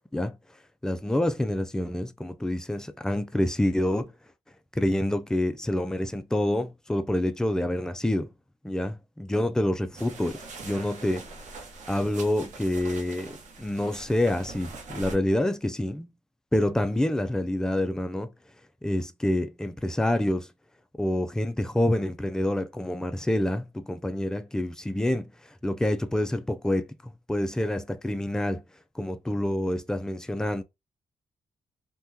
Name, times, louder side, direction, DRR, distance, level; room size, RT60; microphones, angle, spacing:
voice 1, 0.8-4.1 4.7-8.3 8.6-11.2 11.9-16.1 16.5-18.3 18.8-20.5 21.0-25.3 25.6-26.9 27.3-28.6 29.0-30.6, left 1 dB, 5° left, 0.3 m, -27 dB
sound 1, 9.9-15.2, right 3 dB, 75° right, 0.8 m, -43 dB
2.8 x 2.2 x 3.5 m
wide cardioid pair, 135°, 13 cm